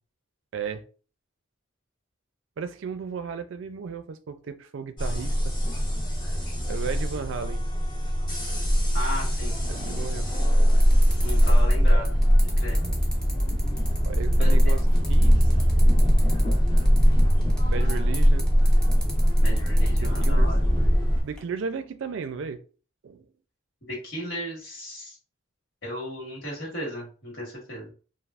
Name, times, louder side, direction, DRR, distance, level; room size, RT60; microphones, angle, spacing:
voice 1, 0.5-0.9 2.6-5.5 6.7-7.6 9.7-10.3 14.1-15.5 17.7-18.5 20.0-20.5 21.2-22.6 23.0-23.3, right 5 dB, 65° right, 0.4 m, -34 dB
sound 1, 5.0-21.2, equal, 25° left, 0.9 m, -21 dB
voice 2, 8.9-9.6 11.2-12.8 14.4-14.7 19.4-21.0 23.8-25.2 25.8-27.9, equal, 60° left, 1.5 m, -36 dB
sound 2, 9.8-21.4, equal, 5° left, 0.6 m, -41 dB
3.3 x 2.4 x 2.4 m
head